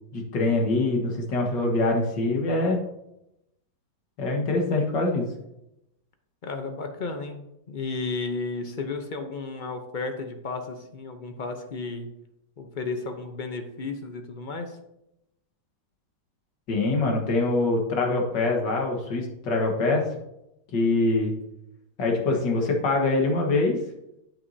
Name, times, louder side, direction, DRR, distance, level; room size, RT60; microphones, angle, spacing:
voice 1, 0.1-2.8 4.2-5.3 16.7-20.0 20.7-21.3 22.0-23.8, left 2 dB, 85° left, 1 dB, 2.1 m, -24 dB
voice 2, 6.4-12.1 12.6-14.8, left 3 dB, 45° left, 5 dB, 0.6 m, -33 dB
9.0 x 8.2 x 2.7 m, 0.85 s
omnidirectional pair, 1.9 m